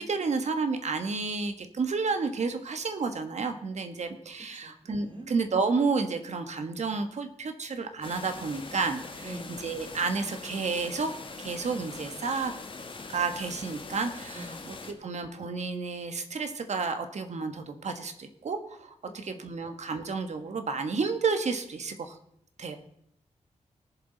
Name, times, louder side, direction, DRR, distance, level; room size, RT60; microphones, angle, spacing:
voice 1, 0.0-9.3 9.6-11.1 11.4-12.5 13.1-22.2 22.6-22.8, right 4 dB, 65° right, 7 dB, 1.4 m, -31 dB
voice 2, 4.6-5.3 9.2-9.5 14.3-15.0 19.3-19.6, right 1 dB, 40° right, 4 dB, 2.6 m, -45 dB
sound 1, 8.0-14.9, left 3 dB, 45° left, 1.5 m, -42 dB
20.5 x 7.3 x 4.0 m, 0.74 s
wide cardioid pair, 100°, 12 cm